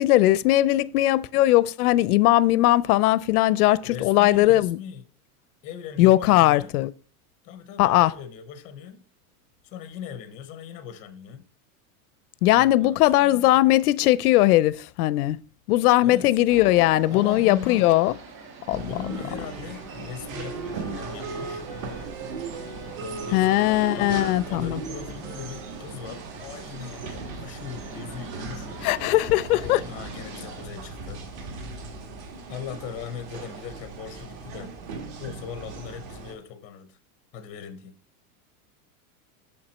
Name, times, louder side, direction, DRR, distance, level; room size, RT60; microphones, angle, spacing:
voice 1, 0.0-4.8 6.0-6.9 7.8-8.1 12.4-15.4 15.7-18.1 18.7-19.0 23.3-24.8 28.8-29.8, left 16 dB, 80° left, 0.5 m, -19 dB
voice 2, 3.8-5.0 5.6-6.7 7.4-9.0 9.6-11.5 12.5-13.5 16.0-16.3 17.1-17.9 18.8-21.6 23.0-28.9 29.6-31.2 32.5-34.7 35.2-37.0 37.3-38.0, left 8 dB, 20° left, 0.5 m, -39 dB
sound 1, 16.5-30.7, right 3 dB, 25° right, 1.7 m, -44 dB
sound 2, 18.7-36.4, right 4 dB, 45° right, 1.5 m, -38 dB
Wind instrument woodwind instrument, 18.9-26.0, right 3 dB, 85° right, 2.7 m, -41 dB
6.6 x 5.9 x 4.2 m
supercardioid pair, 170°, 44 cm